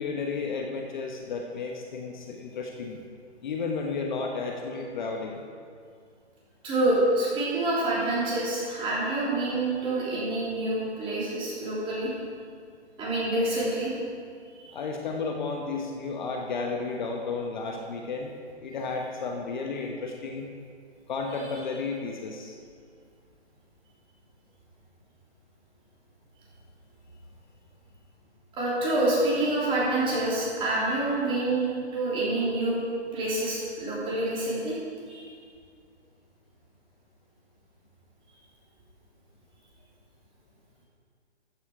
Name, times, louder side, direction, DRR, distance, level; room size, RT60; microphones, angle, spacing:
voice 1, 0.0-3.0 3.4-5.4 14.7-18.3 18.6-20.5 21.1-22.5, left 4 dB, 45° left, 2 dB, 1.2 m, -32 dB
voice 2, 6.6-12.1 13.0-13.9 14.6-14.7 28.5-32.8 33.1-34.8 35.1-35.3, right 2 dB, 15° right, -7 dB, 3.2 m, -27 dB
14.0 x 9.3 x 4.9 m, 2.2 s
hypercardioid pair, 145°, 34 cm